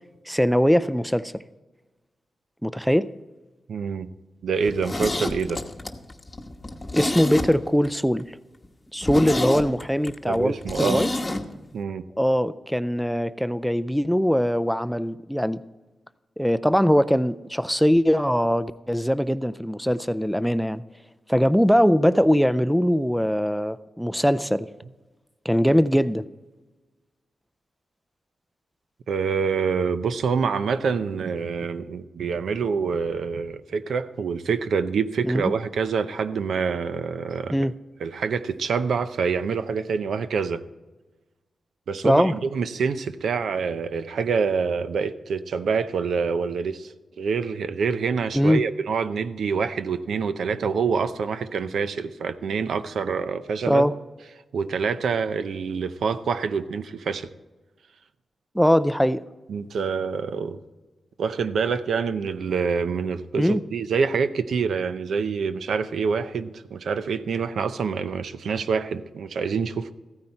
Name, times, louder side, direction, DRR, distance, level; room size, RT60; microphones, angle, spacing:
voice 1, 0.3-1.4 2.6-3.1 6.9-8.2 8.9-11.1 12.2-15.6 16.4-20.8 21.3-24.7 25.5-26.3 35.2-35.5 37.5-37.7 42.0-42.4 48.3-48.6 53.7-53.9 58.5-59.2 63.4-63.6, equal, ahead, 14 dB, 0.4 m, -21 dB
voice 2, 3.7-4.1 4.4-5.6 10.3-11.1 11.7-12.0 29.1-37.5 38.0-40.6 41.9-46.9 47.2-53.9 54.5-57.3 59.5-60.6 61.2-69.9, right 5 dB, 80° right, 11 dB, 0.6 m, -26 dB
Zipper (clothing), 4.6-7.9 8.2-8.3 8.6-8.7 9.0-11.4 11.7-11.8, left 2 dB, 20° left, 1.1 m, -28 dB
15.0 x 9.5 x 4.4 m, 1.2 s
wide cardioid pair, 120°, 0 cm